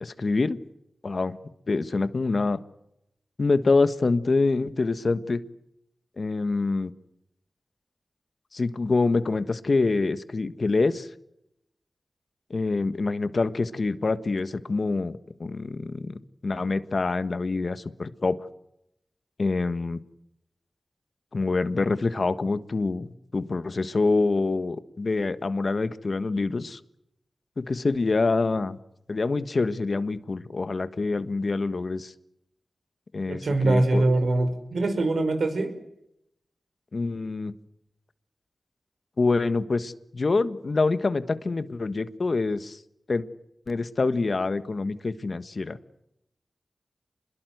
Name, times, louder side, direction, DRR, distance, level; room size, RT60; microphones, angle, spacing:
voice 1, 0.0-0.6 1.0-1.4 1.7-2.6 3.4-5.4 6.2-6.9 8.5-11.1 12.5-18.4 19.4-20.0 21.3-26.8 27.6-28.8 29.1-32.1 33.1-34.0 36.9-37.5 39.2-42.8 43.1-43.2 43.7-45.8, left 3 dB, 60° left, 13 dB, 1.4 m, -26 dB
voice 2, 33.3-35.7, right 2 dB, 80° right, 8 dB, 5.2 m, -23 dB
26.5 x 21.5 x 8.0 m, 0.79 s
cardioid pair, 50°, 0 cm